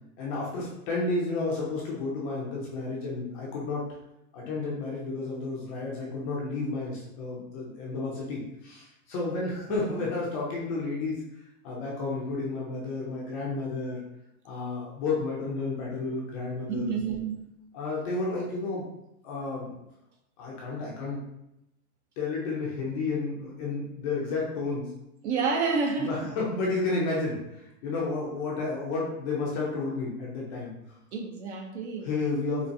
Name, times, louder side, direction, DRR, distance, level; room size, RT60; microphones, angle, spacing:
voice 1, 0.2-3.8 4.3-11.2 11.6-14.0 14.4-17.0 17.7-18.9 19.2-19.7 20.4-21.2 22.2-24.9 26.0-30.7 32.0-32.7, left 3 dB, 25° left, -4 dB, 0.5 m, -31 dB
voice 2, 16.7-17.4 25.2-26.3 31.1-32.1, right 5 dB, 50° right, 2 dB, 0.6 m, -29 dB
3.9 x 2.4 x 2.6 m, 0.84 s
hypercardioid pair, 140°, 45 cm